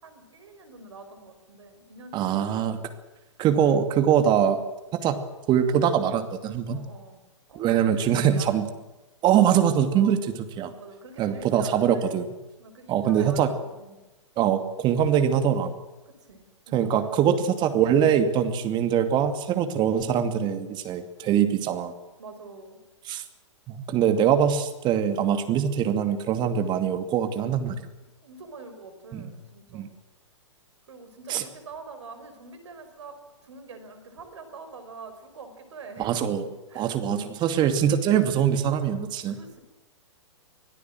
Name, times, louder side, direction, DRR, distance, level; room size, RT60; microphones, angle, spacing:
voice 1, 0.0-2.9 6.7-7.2 7.5-8.5 9.9-10.2 10.7-12.2 12.6-14.0 16.1-17.3 22.2-22.8 28.2-30.0 30.9-33.2 33.4-36.1 36.7-37.0 39.3-39.6, right 4 dB, 65° right, 8 dB, 5.3 m, -45 dB
voice 2, 2.1-2.8 3.4-4.6 4.9-5.2 5.5-6.8 7.6-8.7 9.2-10.2 10.6-10.7 11.2-12.3 12.9-13.5 14.4-15.7 16.7-21.9 23.0-23.2 23.7-27.7 29.1-29.3 29.7-29.9 31.3-31.4 36.0-39.4, right 9 dB, 30° right, 8 dB, 2.4 m, -23 dB
25.0 x 17.0 x 7.8 m, 1.1 s
figure-of-eight pair, 115°, 16 cm